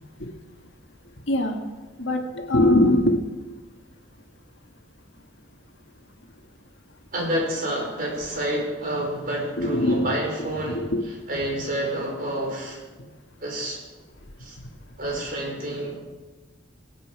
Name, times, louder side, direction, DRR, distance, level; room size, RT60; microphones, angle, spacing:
voice 1, 1.3-1.6 2.0-3.2 9.6-10.1 10.7-11.0, left 1 dB, 70° left, 3 dB, 1.8 m, -21 dB
voice 2, 7.1-10.9 11.3-12.8 13.4-13.8 14.4-14.6 15.0-15.9, right 1 dB, 50° right, -1 dB, 4.8 m, -28 dB
23.0 x 8.8 x 4.8 m, 1.2 s
head